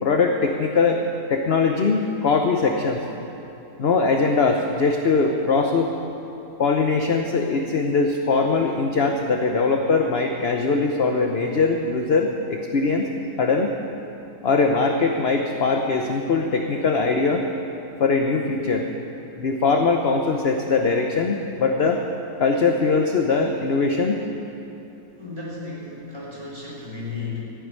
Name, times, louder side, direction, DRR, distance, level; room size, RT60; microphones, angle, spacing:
voice 1, 0.0-1.0 1.3-3.0 3.8-5.9 6.6-13.1 13.4-13.7 14.4-17.4 18.0-18.9 19.4-22.0 22.4-24.2, left 4 dB, 50° left, 3 dB, 0.9 m, -21 dB
voice 2, 25.2-27.4, left 4 dB, 15° right, -6 dB, 4.4 m, -34 dB
14.5 x 9.7 x 9.6 m, 2.9 s
omnidirectional pair, 1.7 m